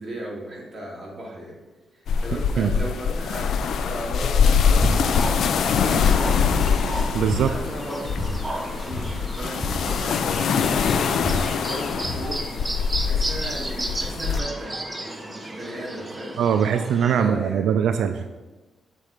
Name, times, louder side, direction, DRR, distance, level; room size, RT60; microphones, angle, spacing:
voice 1, 0.0-1.6 1.9-5.3 5.8-6.6 7.4-16.4 17.2-18.0, equal, 30° right, -4 dB, 2.3 m, -36 dB
sound 1, 2.1-14.4, left 6 dB, 75° left, 0.4 m, -23 dB
sound 2, 4.7-5.0 5.2-5.8 6.2-6.3 6.5-7.5 8.1-8.3 8.6-8.7 8.8-10.5 10.8-12.3, left 2 dB, 20° left, 0.8 m, -31 dB
sound 3, 4.7-17.2, right 1 dB, 15° right, 0.8 m, -34 dB
voice 2, 7.1-7.5 16.4-18.3, right 8 dB, 90° right, 8 dB, 0.3 m, -21 dB
7.6 x 4.1 x 4.9 m, 1.2 s
cardioid pair, 120°, 0 cm